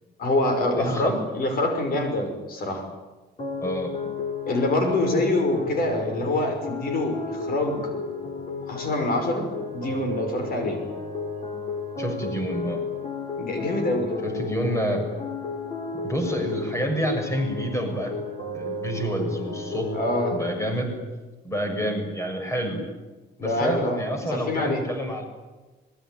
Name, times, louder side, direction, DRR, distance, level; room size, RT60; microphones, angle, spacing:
voice 1, 0.2-2.9 4.5-7.9 8.7-9.5 9.7-10.8 13.4-14.1 19.9-20.4 23.4-24.0 24.3-24.8, left 2 dB, 55° left, 6 dB, 5.7 m, -25 dB
voice 2, 0.8-1.1 3.6-3.9 12.0-12.8 14.2-15.0 16.0-18.1 18.5-19.9 20.3-21.0 21.4-22.8 23.4-25.2, equal, 15° left, 4 dB, 6.9 m, -28 dB
sound 1, 3.4-20.5, left 3 dB, 35° left, 5.7 m, -33 dB
25.5 x 22.0 x 9.3 m, 1.2 s
cardioid pair, 140°, 18 cm